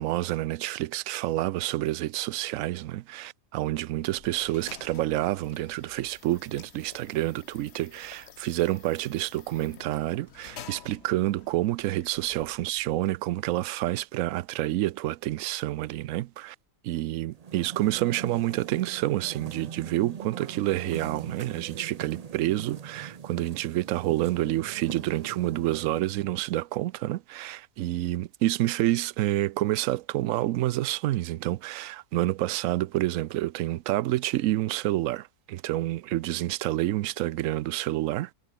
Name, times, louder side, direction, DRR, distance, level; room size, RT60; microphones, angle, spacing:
voice 1, 0.0-16.6 16.8-38.3, right 15 dB, 70° right, 0.9 m, -28 dB
sound 1, 3.8-13.1, left 8 dB, 50° left, 1.0 m, -51 dB
sound 2, 17.3-26.2, right 6 dB, 45° right, 0.5 m, -42 dB
omnidirectional pair, 1.6 m